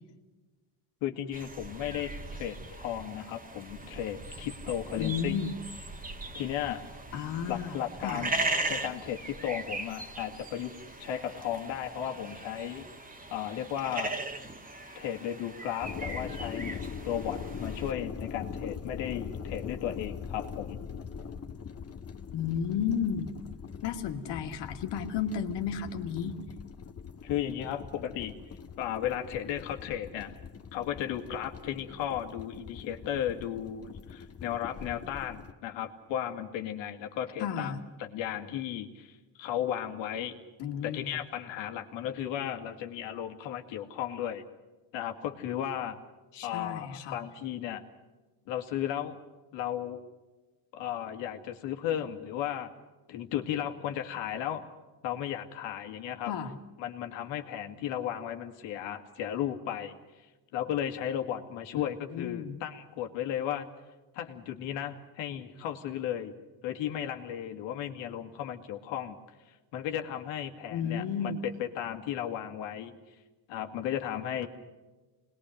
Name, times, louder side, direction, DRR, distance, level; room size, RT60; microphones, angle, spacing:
voice 1, 1.0-5.4 6.3-6.9 7.5-8.3 8.7-12.8 13.3-14.2 15.0-20.8 27.2-28.4 28.8-30.4 30.7-37.7 38.0-40.4 40.8-44.4 44.9-46.0 46.4-47.8 48.5-49.2 49.5-50.0 50.7-52.7 53.1-54.7 55.0-56.3 56.8-60.3 60.5-63.7 64.1-66.3 66.6-69.2 69.5-73.0 73.5-74.5, left 10 dB, 80° left, 5 dB, 2.3 m, -35 dB
sound 1, 1.3-17.9, right 2 dB, 20° right, 1.9 m, -39 dB
voice 2, 5.0-5.5 7.1-7.7 8.0-8.2 22.3-23.4 23.8-26.4 37.4-37.8 40.6-41.2 46.3-47.2 56.3-56.6 61.7-62.6 70.7-71.4, left 7 dB, 65° left, 5 dB, 2.3 m, -33 dB
sound 2, 15.8-35.5, left 6 dB, 35° left, 1.6 m, -42 dB
27.0 x 20.5 x 6.5 m, 1.2 s
cardioid pair, 110°, 44 cm